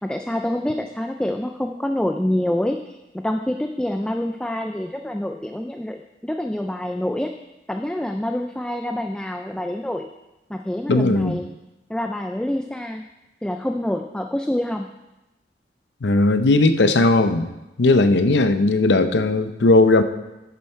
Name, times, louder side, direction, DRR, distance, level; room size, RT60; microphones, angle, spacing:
voice 1, 0.0-7.3 7.7-10.1 10.5-11.5 11.9-13.0 13.4-14.9 18.2-18.4, left 1 dB, 5° left, 5 dB, 0.3 m, -26 dB
voice 2, 10.9-11.4 16.0-17.5 17.8-20.0, left 2 dB, 75° left, 9 dB, 0.6 m, -17 dB
10.5 x 6.9 x 4.4 m, 1.0 s
head